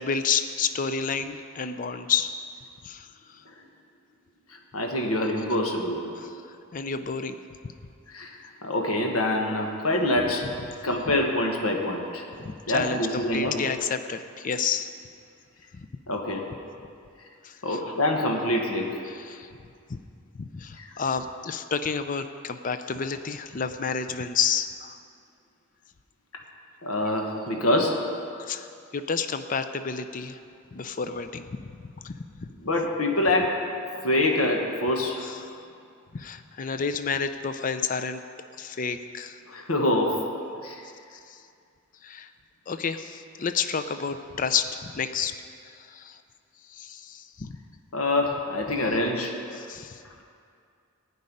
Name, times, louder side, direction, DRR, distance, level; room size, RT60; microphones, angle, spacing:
voice 1, 0.0-2.3 2.8-3.4 6.2-7.4 12.4-14.9 17.4-17.8 19.1-19.5 19.9-20.0 20.4-25.0 28.4-30.4 30.7-31.4 32.0-32.2 35.2-35.5 36.1-38.2 38.6-39.4 41.3-41.4 42.0-42.3 42.7-45.3 45.6-46.2 46.7-47.5 49.5-50.0, left 6 dB, 40° left, 9 dB, 0.5 m, -30 dB
voice 2, 4.5-6.2 8.1-10.4 10.8-12.2 12.7-13.5 16.1-16.4 17.6-19.0 20.8-20.9 26.8-27.9 32.6-33.5 34.0-35.2 39.5-40.1 40.6-40.8 47.9-49.3, left 1 dB, 85° left, 1 dB, 1.4 m, -25 dB
15.5 x 5.4 x 9.7 m, 2.4 s
head